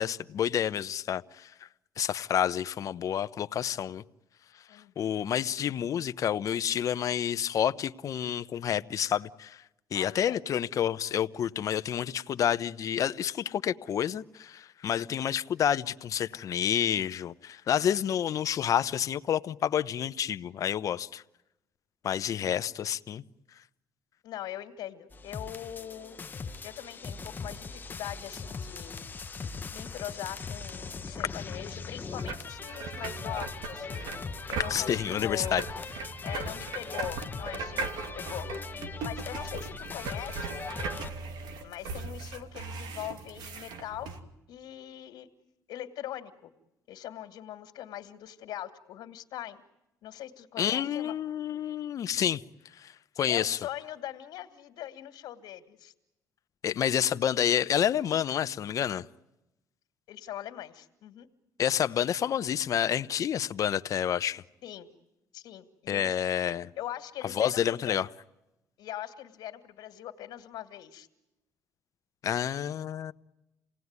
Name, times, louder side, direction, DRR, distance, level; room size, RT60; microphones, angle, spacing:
voice 1, 0.0-1.7 2.0-4.0 4.7-9.6 9.9-21.2 22.0-23.2 31.3-31.4 34.7-35.6 50.6-52.4 52.8-53.6 56.6-59.0 61.6-64.4 65.9-66.7 67.2-68.1 72.2-73.1, left 9 dB, 50° left, 0.9 m, -29 dB
voice 2, 9.9-10.5 22.4-22.5 24.2-26.2 26.6-29.1 29.7-34.1 34.5-35.6 36.2-40.6 41.6-44.2 44.5-45.3 45.7-46.5 46.9-49.6 50.0-51.1 53.3-55.9 60.1-61.3 64.6-64.9 65.3-66.3 66.8-68.0 68.8-71.1, left 12 dB, 80° left, 2.2 m, -41 dB
sound 1, 25.1-41.1, left 4 dB, 25° left, 1.0 m, -40 dB
sound 2, 32.1-44.2, right 4 dB, 80° right, 2.7 m, -39 dB
28.5 x 18.5 x 9.7 m
cardioid pair, 120°, 7 cm